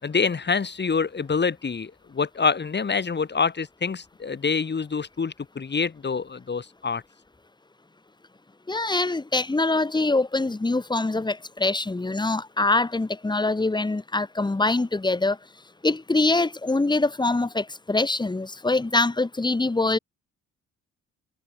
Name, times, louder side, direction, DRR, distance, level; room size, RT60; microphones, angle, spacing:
voice 1, 0.0-7.0, left 5 dB, 35° left, 5.2 m, -26 dB
voice 2, 8.7-15.4 15.8-20.0, left 2 dB, 15° left, 2.0 m, -24 dB
cardioid pair, 90°, 30 cm